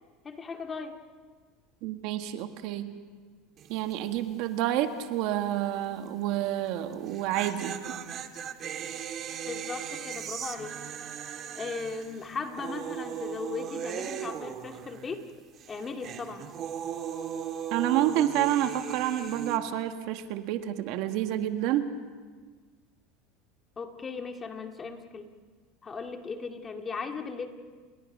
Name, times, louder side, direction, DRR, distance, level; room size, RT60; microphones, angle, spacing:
voice 1, 0.2-1.0 9.5-10.8 11.5-15.3 15.7-16.5 23.8-25.3 25.8-27.5, left 4 dB, 25° left, 5 dB, 2.1 m, -37 dB
voice 2, 1.8-2.9 3.7-7.8 17.7-21.9, right 12 dB, 65° right, 7 dB, 1.6 m, -29 dB
sound 1, 3.6-4.2 6.9-15.3 15.6-19.6, right 8 dB, 40° right, 1.6 m, -38 dB
30.0 x 21.5 x 5.5 m, 1.5 s
supercardioid pair, 115°, 0 cm